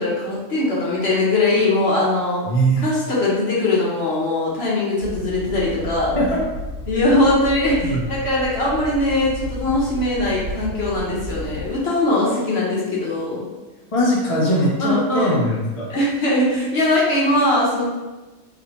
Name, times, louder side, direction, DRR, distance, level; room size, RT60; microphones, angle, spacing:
voice 1, 0.0-2.5 2.8-6.2 6.9-13.4 14.8-15.4 15.9-17.8, left 2 dB, 55° left, -6 dB, 1.1 m, -20 dB
voice 2, 2.5-2.9 6.1-6.4 7.8-8.1 13.9-15.9, right 1 dB, 35° left, -5 dB, 0.6 m, -20 dB
sound 1, 5.0-11.7, right 1 dB, 80° right, 1.2 m, -32 dB
4.1 x 2.8 x 2.9 m, 1.1 s
omnidirectional pair, 1.4 m